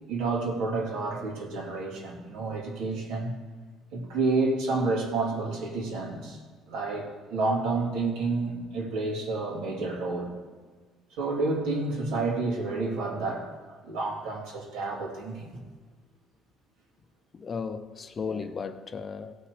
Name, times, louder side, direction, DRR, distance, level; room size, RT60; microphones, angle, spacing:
voice 1, 0.1-3.3 3.9-6.4 6.7-10.3 11.2-13.5 13.8-15.5 18.3-18.4, right 3 dB, 85° right, 2.9 m, -29 dB
voice 2, 17.3-19.5, left 5 dB, 30° left, 0.6 m, -35 dB
16.5 x 5.9 x 4.9 m
cardioid pair, 150°, 0 cm